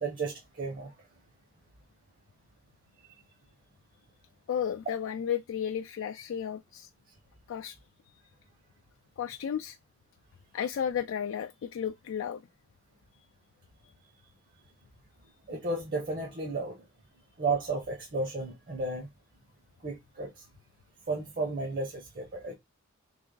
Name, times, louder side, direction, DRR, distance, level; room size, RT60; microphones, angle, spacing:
voice 1, 0.0-0.9 15.5-16.8 17.4-19.1 19.8-20.3 21.1-22.5, right 3 dB, 45° right, 0.9 m, -33 dB
voice 2, 4.5-6.9 7.5-7.8 9.2-9.8 10.5-12.4, left 8 dB, 65° left, 0.3 m, -33 dB
3.4 x 3.0 x 3.8 m
head